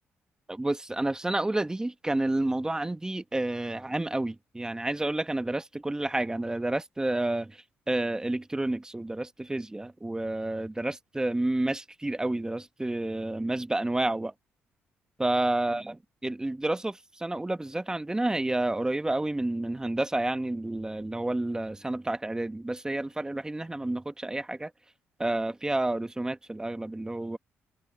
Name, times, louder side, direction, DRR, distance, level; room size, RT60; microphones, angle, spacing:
voice 1, 0.5-14.3 15.2-24.7 25.2-27.4, right 2 dB, 15° right, 1.3 m, -30 dB
cardioid pair, 75°, 5 cm